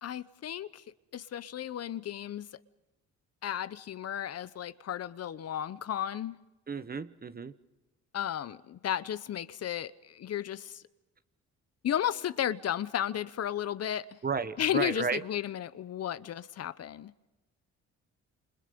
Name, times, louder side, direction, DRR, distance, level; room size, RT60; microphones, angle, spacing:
voice 1, 0.0-0.8 1.1-2.5 3.4-6.4 8.1-10.8 11.8-14.0 14.6-17.1, left 10 dB, 55° left, 0.9 m, -34 dB
voice 2, 6.7-7.5 14.2-15.2, right 5 dB, 30° right, 1.1 m, -33 dB
28.5 x 26.5 x 5.2 m
cardioid pair, 90°, 30 cm